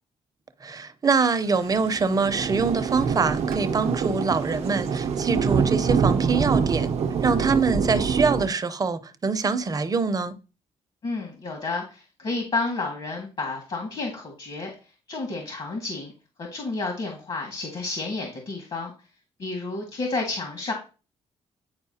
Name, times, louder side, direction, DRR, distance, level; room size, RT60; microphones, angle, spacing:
voice 1, 0.6-6.9 7.2-10.4, right 4 dB, 35° right, 0.7 m, -24 dB
sound 1, 1.6-8.5, right 6 dB, 70° right, 0.7 m, -25 dB
voice 2, 11.0-14.7 15.1-16.1 16.4-18.9 19.4-20.7, left 3 dB, 55° left, 1.9 m, -30 dB
9.7 x 4.3 x 2.8 m
cardioid pair, 80°, 11 cm